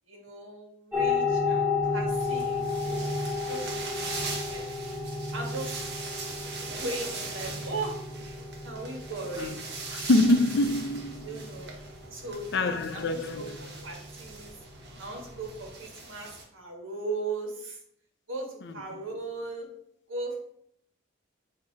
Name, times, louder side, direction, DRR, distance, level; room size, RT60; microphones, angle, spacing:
voice 1, 0.1-4.2 4.5-4.6 5.3-5.9 6.7-8.0 8.6-9.8 11.2-11.7 12.1-14.5 15.0-17.8 18.3-19.7 20.1-20.6, right 2 dB, 75° right, 1.7 m, -38 dB
sound 1, 0.9-15.7, left 4 dB, 5° right, 1.4 m, -33 dB
sound 2, 2.1-16.4, right 3 dB, 55° right, 1.1 m, -41 dB
voice 2, 9.9-11.3 12.5-13.6, left 2 dB, 60° left, 0.6 m, -25 dB
8.1 x 2.8 x 4.6 m
head